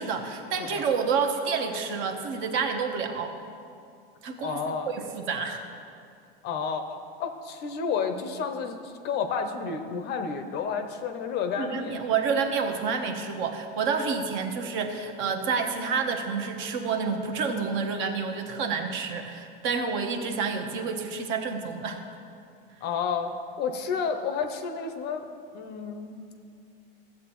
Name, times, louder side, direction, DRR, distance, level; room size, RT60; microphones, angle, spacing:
voice 1, 0.0-3.4 4.2-4.6 4.9-5.6 11.6-22.0, right 5 dB, 45° right, 5 dB, 1.0 m, -29 dB
voice 2, 4.4-4.9 6.4-12.0 22.8-23.3 23.6-25.3 25.5-26.2, left 6 dB, 35° left, 7 dB, 0.7 m, -31 dB
15.0 x 7.5 x 3.0 m, 2.4 s
supercardioid pair, 140°, 29 cm